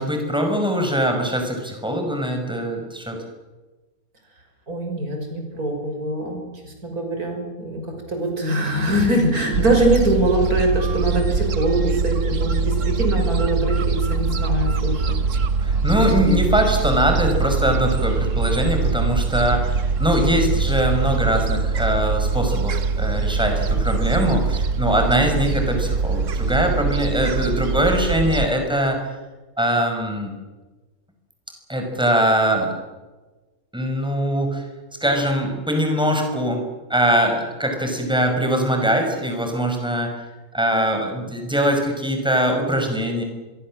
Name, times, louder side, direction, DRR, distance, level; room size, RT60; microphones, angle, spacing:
voice 1, 0.0-3.2 15.6-29.0 29.6-30.3 31.7-32.7 33.7-34.6 35.0-40.2 40.5-43.2, equal, 5° right, 3 dB, 5.4 m, -22 dB
voice 2, 4.7-7.8 8.1-15.2, right 1 dB, 80° right, 3 dB, 6.7 m, -23 dB
Gull seagull, 9.5-28.5, right 4 dB, 60° right, 1.4 m, -22 dB
25.5 x 23.0 x 7.5 m, 1.2 s
omnidirectional pair, 1.5 m